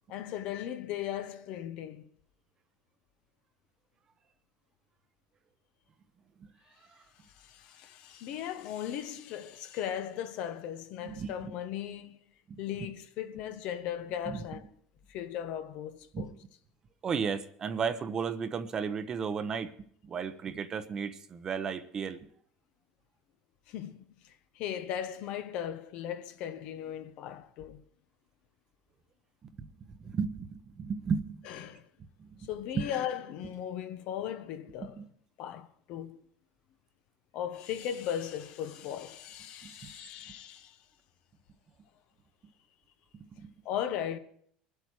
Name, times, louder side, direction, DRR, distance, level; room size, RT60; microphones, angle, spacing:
voice 1, 0.1-2.0 7.4-12.2 12.6-14.7 15.1-16.3 23.7-24.1 24.6-27.8 31.5-31.8 32.5-35.0 35.4-36.2 37.3-40.8 43.6-44.2, left 10 dB, 60° left, 1.1 m, -37 dB
voice 2, 11.0-11.5 14.3-14.4 16.1-16.3 17.0-19.7 20.0-22.2 29.9-31.5 32.2-32.5 32.7-32.8 35.0-35.1 39.6-39.9 43.1-43.5, right 6 dB, 30° right, 0.9 m, -34 dB
24.0 x 8.1 x 4.7 m
cardioid pair, 140°, 2 cm